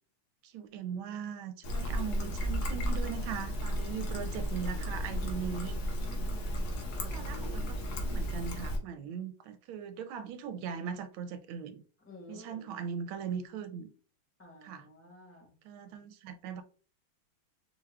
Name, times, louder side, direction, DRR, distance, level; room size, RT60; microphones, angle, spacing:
voice 1, 0.4-5.8 7.0-11.8 12.3-13.9 14.6-14.9 15.6-16.6, right 7 dB, 85° right, 1.5 m, -39 dB
Trickle dribble, 1.6-8.8, equal, 60° left, 1.3 m, -34 dB
voice 2, 6.1-7.4 12.0-12.7 14.4-15.5, left 2 dB, 10° left, 0.9 m, -53 dB
4.5 x 2.3 x 3.4 m
omnidirectional pair, 2.2 m